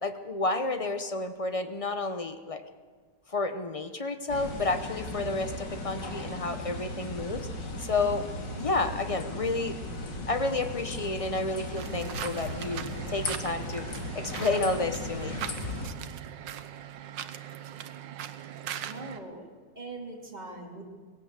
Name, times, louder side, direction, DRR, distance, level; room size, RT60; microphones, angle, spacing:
voice 1, 0.0-2.6 3.3-7.5 7.8-8.2 8.6-9.8 10.3-13.8 14.1-15.4, left 3 dB, 45° left, 9 dB, 0.4 m, -30 dB
sound 1, 4.3-15.9, left 1 dB, 70° left, 2.8 m, -37 dB
sound 2, 11.8-19.2, right 10 dB, 85° right, 1.6 m, -40 dB
voice 2, 18.7-19.5 19.8-20.8, right 2 dB, 25° right, 1 dB, 2.7 m, -41 dB
19.0 x 17.0 x 8.1 m, 1.5 s
omnidirectional pair, 2.0 m